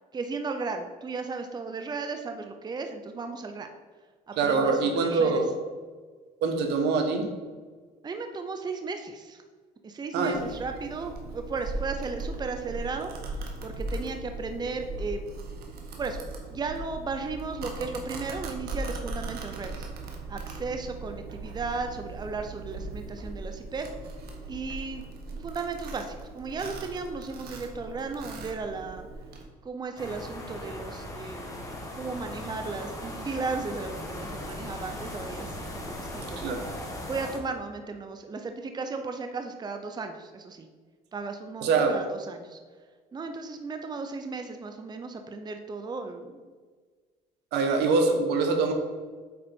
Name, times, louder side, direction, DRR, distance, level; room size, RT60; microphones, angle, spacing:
voice 1, 0.1-3.7 4.3-5.4 8.0-9.4 9.8-13.1 13.6-15.2 16.0-16.2 16.5-19.9 20.3-23.9 24.5-25.0 25.4-29.1 29.6-35.5 35.8-36.5 37.1-40.7 41.1-42.6 43.1-46.4, right 4 dB, 25° right, 6 dB, 0.7 m, -35 dB
voice 2, 4.4-5.5 6.4-7.3 10.1-10.4 36.4-36.6 41.6-41.9 47.5-48.7, right 4 dB, 85° right, 4 dB, 1.3 m, -24 dB
Domestic sounds home sounds, 10.3-29.4, right 2 dB, 65° right, 1.5 m, -39 dB
sound 1, 30.0-37.4, left 1 dB, 20° left, 1.6 m, -38 dB
8.6 x 4.1 x 5.3 m, 1.5 s
cardioid pair, 110°, 17 cm